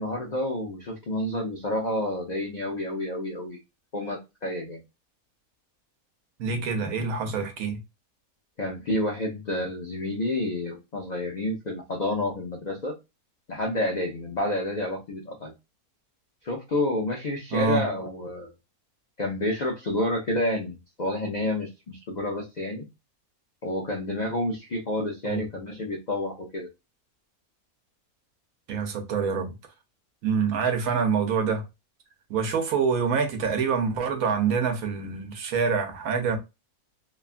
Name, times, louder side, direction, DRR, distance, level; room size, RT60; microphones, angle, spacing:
voice 1, 0.0-3.6 3.9-4.8 8.6-13.0 13.5-15.5 16.4-18.5 19.2-22.9 23.6-26.7, left 1 dB, 85° left, 0.3 m, -29 dB
voice 2, 6.4-7.8 17.5-17.9 25.2-25.4 28.7-29.5 30.2-31.6 32.3-36.4, right 5 dB, 75° right, 1.1 m, -26 dB
3.1 x 2.3 x 2.4 m
omnidirectional pair, 1.5 m